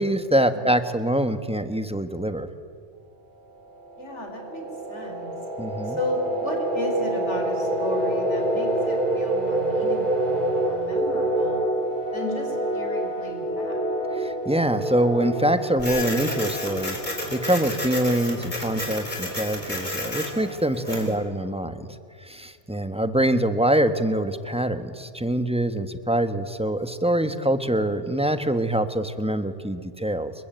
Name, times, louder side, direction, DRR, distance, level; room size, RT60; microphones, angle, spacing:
voice 1, 0.0-2.5 5.6-6.0 14.1-17.0 17.3-21.9 22.2-30.3, right 1 dB, 5° right, 9 dB, 1.2 m, -24 dB
sound 1, 3.7-18.2, right 1 dB, 45° right, 4.4 m, -27 dB
voice 2, 4.0-5.4 5.8-11.7 12.1-13.8 20.9-21.3 27.6-27.9, left 1 dB, 80° left, 3 dB, 4.3 m, -34 dB
Printer, 15.8-21.2, left 1 dB, 40° left, 4.7 m, -31 dB
29.5 x 21.5 x 9.3 m, 2.2 s
omnidirectional pair, 1.2 m